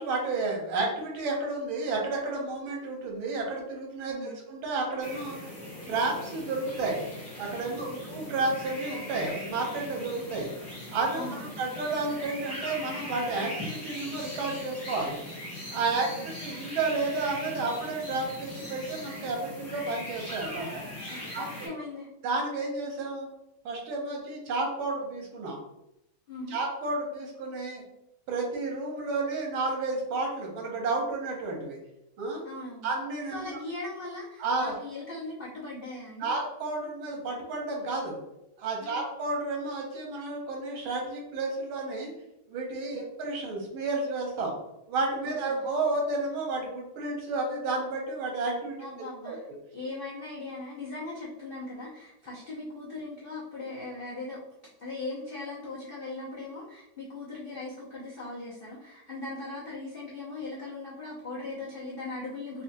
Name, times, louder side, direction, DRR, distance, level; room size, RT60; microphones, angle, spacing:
voice 1, 0.0-5.5 5.9-7.1 7.4-10.5 10.9-15.2 15.7-20.8 21.3-21.4 22.2-23.3 23.6-25.6 26.5-27.8 28.3-31.8 32.2-32.4 32.8-33.6 34.4-34.8 36.2-38.2 38.6-42.1 42.5-44.5 44.9-48.9 49.3-49.4, right 3 dB, 85° right, 0 dB, 1.7 m, -31 dB
voice 2, 4.1-4.4 7.9-8.1 11.1-11.5 16.1-16.3 21.1-22.1 26.3-26.6 32.4-32.9 33.3-36.3 38.8-39.0 45.3-45.6 48.8-49.5 49.7-54.4 54.8-62.6, left 2 dB, 85° left, -8 dB, 0.4 m, -39 dB
sound 1, 5.0-21.7, left 1 dB, 30° left, 1.1 m, -40 dB
4.2 x 2.3 x 2.6 m, 0.85 s
omnidirectional pair, 2.2 m